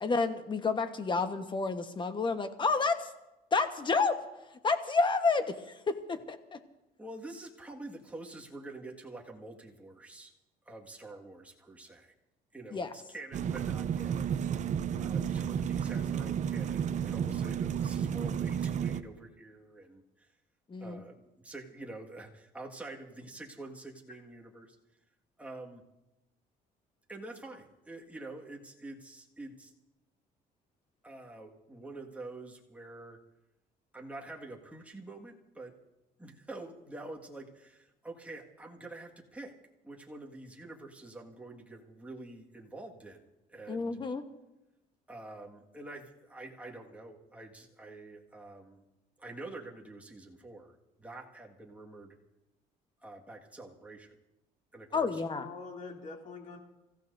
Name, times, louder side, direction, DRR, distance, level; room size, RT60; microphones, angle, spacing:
voice 1, 0.0-3.1 3.5-4.2 4.6-6.6 12.7-12.9 20.7-21.0 43.7-44.2 54.9-55.5, left 4 dB, 30° left, 9 dB, 1.2 m, -30 dB
voice 2, 7.0-10.3 10.7-12.1 12.5-14.7 15.0-20.3 20.8-24.8 25.4-25.8 27.1-29.7 31.0-33.2 33.9-35.7 36.2-39.5 39.8-44.0 45.1-48.8 49.2-52.2 53.0-54.2 54.7-55.2, right 2 dB, 10° right, -1 dB, 1.8 m, -47 dB
sound 1, 13.3-19.0, right 8 dB, 45° right, 0.6 m, -32 dB
voice 3, 14.9-15.4 55.3-56.6, left 4 dB, 50° left, 1 dB, 2.8 m, -45 dB
28.0 x 15.0 x 2.6 m, 0.99 s
cardioid pair, 110°, 17 cm